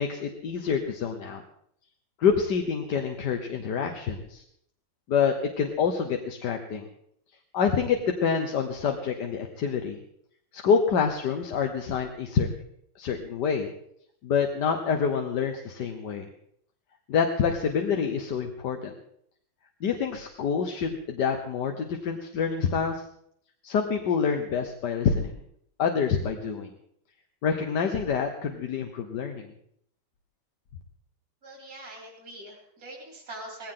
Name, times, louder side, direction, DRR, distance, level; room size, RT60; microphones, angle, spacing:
voice 1, 0.0-1.4 2.2-4.4 5.1-6.9 7.5-10.0 10.5-12.5 13.0-13.7 14.2-16.3 17.1-18.9 19.8-23.1 23.6-25.4 25.8-26.7 27.4-29.5, left 6 dB, 70° left, 4 dB, 1.7 m, -27 dB
voice 2, 31.4-33.7, right 1 dB, 55° right, -1 dB, 3.7 m, -43 dB
19.0 x 16.5 x 3.9 m, 0.70 s
omnidirectional pair, 2.0 m